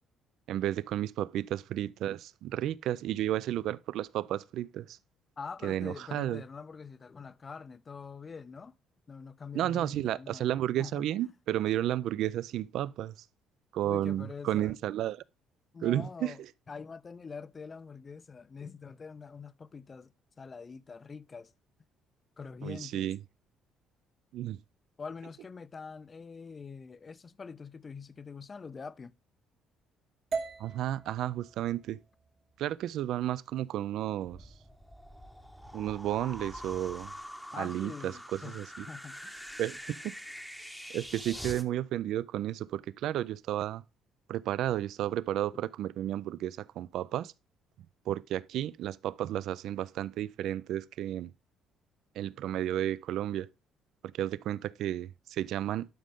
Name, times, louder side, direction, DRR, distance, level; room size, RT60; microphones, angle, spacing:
voice 1, 0.5-5.0 5.6-6.4 9.5-13.2 13.7-15.2 15.8-16.3 22.6-23.2 24.3-24.6 30.6-32.0 32.6-34.5 35.7-37.1 37.6-38.1 38.5-38.9 39.6-40.1 40.9-43.8 44.3-47.3 48.1-51.3 52.2-53.5 54.0-55.9, right 12 dB, 65° right, 0.3 m, -32 dB
voice 2, 5.4-8.8 9.1-10.5 10.8-11.1 13.8-14.7 15.7-21.5 22.4-23.1 25.0-29.1 37.5-39.3, left 5 dB, 25° left, 0.4 m, -45 dB
sound 1, 30.3-34.4, right 5 dB, 40° right, 1.1 m, -42 dB
sound 2, 34.2-41.6, equal, ahead, 0.8 m, -45 dB
11.5 x 5.2 x 3.5 m
cardioid pair, 145°, 0 cm